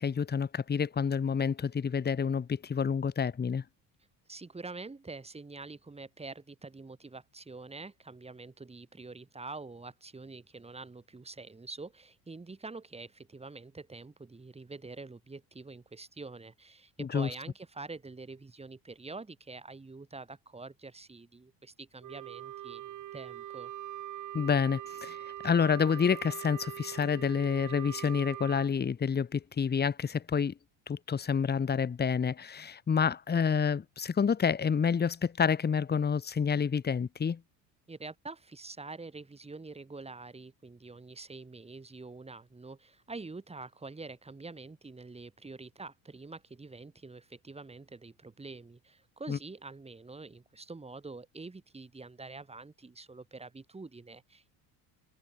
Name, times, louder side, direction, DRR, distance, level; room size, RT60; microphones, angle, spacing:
voice 1, 0.0-3.6 17.0-17.3 24.3-25.2 25.4-30.5 30.9-37.4 49.3-49.4, left 6 dB, 20° left, 1.9 m, -28 dB
voice 2, 4.3-23.7 37.9-54.5, right 3 dB, 15° right, 6.2 m, -46 dB
Wind instrument woodwind instrument, 22.0-28.7, right 12 dB, 45° right, 1.6 m, -42 dB
cardioid pair, 130°, 44 cm